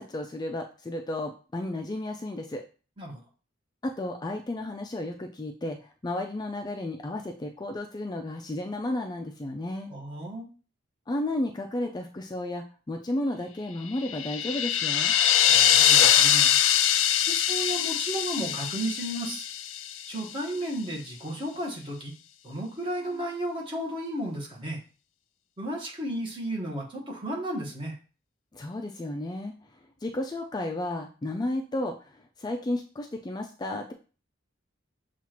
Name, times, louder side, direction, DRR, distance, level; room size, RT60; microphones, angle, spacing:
voice 1, 0.0-2.6 3.8-5.8 6.0-9.9 11.1-15.1 28.5-29.5 30.0-33.9, left 1 dB, 20° left, 4 dB, 0.4 m, -33 dB
voice 2, 9.9-10.5 15.5-16.6 17.3-19.5 20.1-22.1 22.4-24.8 25.6-28.0, right 1 dB, 25° right, -2 dB, 1.3 m, -33 dB
sound 1, 14.0-20.2, left 10 dB, 85° left, 0.4 m, -23 dB
7.1 x 2.5 x 3.0 m, 0.36 s
head